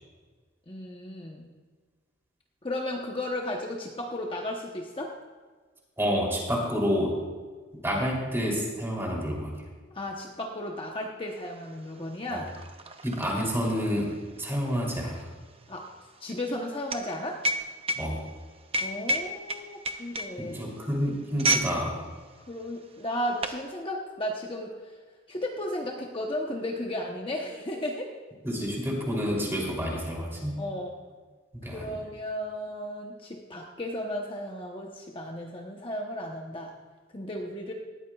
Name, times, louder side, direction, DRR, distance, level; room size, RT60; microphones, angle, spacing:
voice 1, 0.7-1.5 2.6-5.1 9.9-12.5 15.7-15.8 16.2-17.4 18.8-20.6 22.5-25.0 25.3-28.1 30.6-31.0 31.7-36.7 37.1-37.7, left 1 dB, 25° left, 0 dB, 0.9 m, -34 dB
voice 2, 6.0-7.2 7.8-9.5 12.3-12.5 13.0-15.3 17.9-18.2 20.4-22.0 28.4-30.5 31.6-31.9, equal, 15° right, -2 dB, 3.1 m, -29 dB
sound 1, 11.4-11.5 11.8-21.8 22.1-22.3 23.0-23.6, right 1 dB, 30° right, 0.8 m, -31 dB
19.0 x 13.5 x 2.4 m, 1.4 s
head